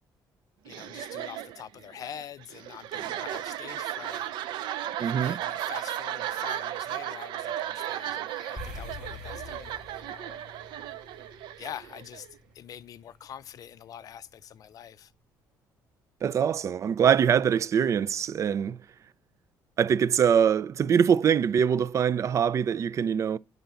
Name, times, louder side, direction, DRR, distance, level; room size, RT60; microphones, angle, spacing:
voice 1, 0.7-4.7 5.0-10.5 11.6-12.3 12.5-15.1, left 9 dB, 50° left, 0.5 m, -45 dB
sound 1, 0.7-12.3, right 12 dB, 80° right, 0.7 m, -35 dB
voice 2, 5.0-5.4 16.2-18.8 19.8-23.4, right 8 dB, 40° right, 0.4 m, -23 dB
sound 2, 8.6-13.1, left 3 dB, 10° right, 5.1 m, -45 dB
10.0 x 4.0 x 6.8 m
cardioid pair, 120°, 8 cm